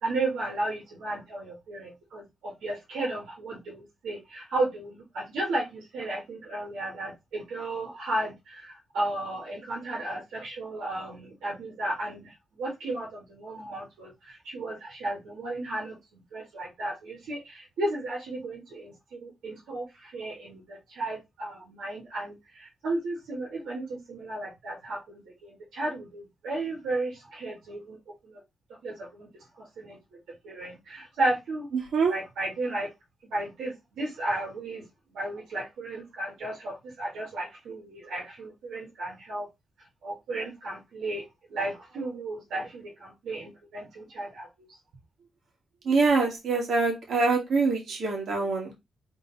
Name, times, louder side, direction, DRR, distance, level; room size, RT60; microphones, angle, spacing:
voice 1, 0.0-16.0 16.3-28.0 28.2-28.4 28.8-29.3 29.6-30.0 30.4-31.7 32.1-32.9 33.2-34.8 35.1-39.5 40.0-41.2 41.5-44.7, right 2 dB, 85° right, 1.8 m, -34 dB
voice 2, 45.8-48.7, right 4 dB, 65° right, 2.1 m, -24 dB
3.8 x 3.3 x 4.1 m
cardioid pair, 95°, 0 cm